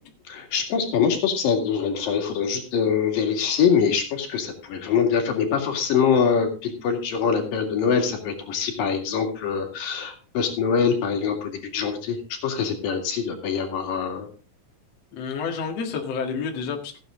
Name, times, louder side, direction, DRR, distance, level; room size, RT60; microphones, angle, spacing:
voice 1, 0.3-14.3, left 6 dB, 85° left, 3 dB, 3.9 m, -24 dB
voice 2, 15.1-17.0, left 5 dB, 55° left, 2 dB, 2.7 m, -29 dB
15.0 x 8.9 x 3.8 m, 0.35 s
omnidirectional pair, 3.9 m